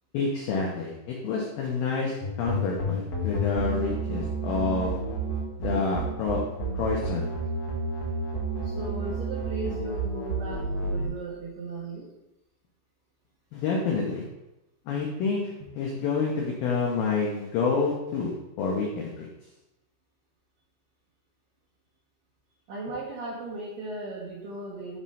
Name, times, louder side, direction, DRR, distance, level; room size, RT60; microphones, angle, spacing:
voice 1, 0.1-2.1 2.4-5.0 5.6-6.4 6.7-7.3 13.5-14.2 14.9-15.4 15.8-18.3 18.6-19.3, left 4 dB, 90° left, -2 dB, 2.0 m, -28 dB
sound 1, 2.2-11.1, right 2 dB, 65° left, 1.6 m, -30 dB
voice 2, 8.6-12.1 22.7-25.0, right 2 dB, 80° right, -6 dB, 2.0 m, -37 dB
7.3 x 3.1 x 5.5 m, 0.92 s
omnidirectional pair, 5.3 m